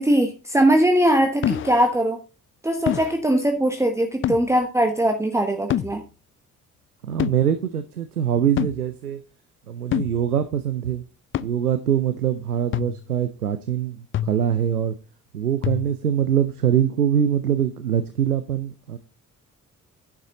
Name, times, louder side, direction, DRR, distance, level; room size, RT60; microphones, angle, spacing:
voice 1, 0.0-2.2 2.6-6.0, right 1 dB, 5° right, 4 dB, 1.3 m, -20 dB
sound 1, 1.4-1.9 2.9-3.2 4.2-4.5 5.7-6.0 7.2-7.4 8.6-8.8 9.9-10.2 11.3-11.5 12.7-13.1 14.1-14.5 15.6-16.0, left 11 dB, 30° left, 0.4 m, -26 dB
voice 2, 7.0-9.2 9.7-11.0 11.4-15.0 15.3-19.0, right 9 dB, 85° right, 12 dB, 0.6 m, -23 dB
10.5 x 6.1 x 3.9 m, 0.32 s
figure-of-eight pair, 45°, 44 cm